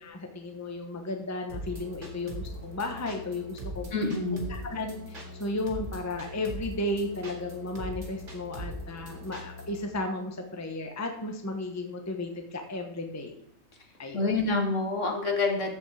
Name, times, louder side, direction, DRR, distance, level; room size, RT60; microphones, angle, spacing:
voice 1, 0.0-3.9 4.5-13.3 14.0-14.3, left 2 dB, 15° left, 4 dB, 1.0 m, -34 dB
sound 1, 1.5-9.8, equal, 60° right, 2.4 m, -41 dB
voice 2, 3.9-4.4 14.1-15.7, left 3 dB, 60° left, 2 dB, 2.1 m, -27 dB
14.0 x 5.4 x 4.8 m, 0.72 s
omnidirectional pair, 1.5 m